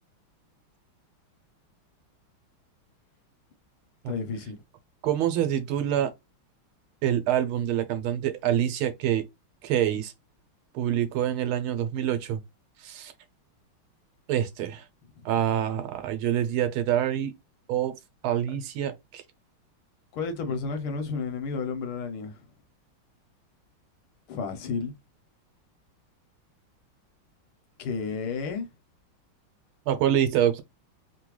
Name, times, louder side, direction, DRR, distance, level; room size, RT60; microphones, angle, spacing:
voice 1, 4.1-4.6 20.1-22.3 24.3-24.9 27.8-28.7, left 4 dB, 80° left, 1.7 m, -31 dB
voice 2, 5.0-6.1 7.0-9.3 9.6-10.1 10.7-12.4 12.8-13.1 14.3-14.8 15.2-17.3 17.7-18.0 18.2-19.2 29.9-30.6, right 10 dB, 90° right, 1.5 m, -26 dB
3.8 x 2.2 x 3.0 m
omnidirectional pair, 2.3 m